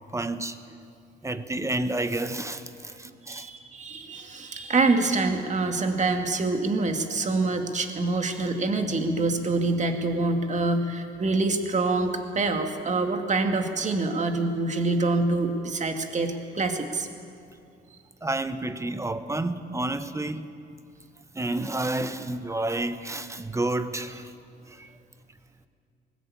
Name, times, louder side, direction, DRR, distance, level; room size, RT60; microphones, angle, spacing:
voice 1, 0.1-0.6 1.2-3.5 18.2-20.6 21.3-24.3 24.7-24.9, right 2 dB, 15° right, 1.1 m, -30 dB
voice 2, 3.2-17.1, right 3 dB, 35° right, 2.2 m, -26 dB
19.5 x 17.0 x 8.6 m
cardioid pair, 90°, 20 cm